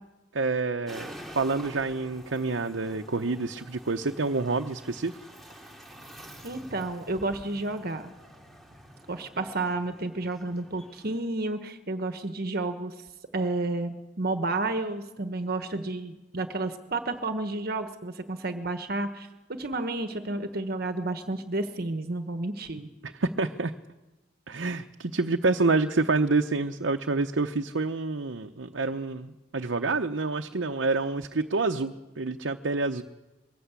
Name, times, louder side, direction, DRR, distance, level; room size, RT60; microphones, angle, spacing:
voice 1, 0.3-5.2 23.0-23.7 24.5-33.0, right 3 dB, 80° right, 4 dB, 0.8 m, -28 dB
sound 1, 0.9-11.2, equal, ahead, 2.6 m, -48 dB
voice 2, 6.4-8.1 9.1-12.9 13.3-19.3 19.6-22.9, right 2 dB, 55° right, 8 dB, 1.2 m, -31 dB
22.0 x 17.5 x 8.3 m, 1.1 s
head